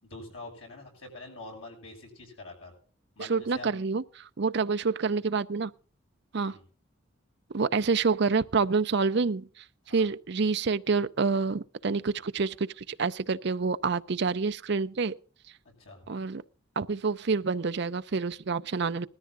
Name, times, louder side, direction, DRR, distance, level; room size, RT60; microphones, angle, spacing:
voice 1, 0.0-2.7 3.2-3.8 6.4-6.6 9.9-10.1 15.8-16.1, left 2 dB, 80° left, 6.9 m, -45 dB
voice 2, 3.2-5.7 6.3-6.6 7.5-15.2 16.1-16.4 16.8-19.1, right 4 dB, 55° right, 0.5 m, -28 dB
19.5 x 14.0 x 2.6 m
head